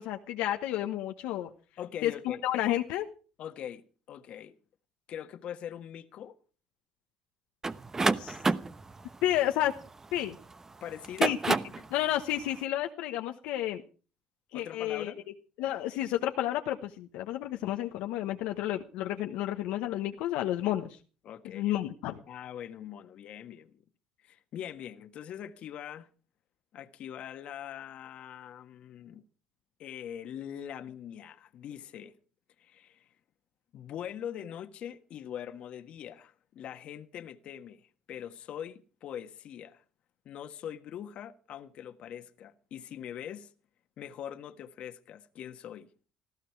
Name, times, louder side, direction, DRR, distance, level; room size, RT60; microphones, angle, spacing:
voice 1, 0.0-1.5 2.0-3.1 8.2-8.4 9.2-9.7 10.1-10.4 11.2-11.5 11.9-13.8 14.5-15.1 15.6-21.0 21.5-22.2, left 13 dB, 80° left, 1.1 m, -31 dB
voice 2, 1.8-2.4 3.4-4.6 5.1-6.4 10.8-11.4 14.5-15.2 21.2-21.7 22.3-23.8 24.2-26.1 26.7-29.2 29.8-32.2 32.6-33.1 33.7-39.8 40.2-43.5 44.0-45.9, left 9 dB, 60° left, 1.5 m, -42 dB
sound 1, 7.6-10.4 11.0-11.9, right 3 dB, 20° right, 0.9 m, -29 dB
19.5 x 14.0 x 4.7 m
supercardioid pair, 95°, 2 cm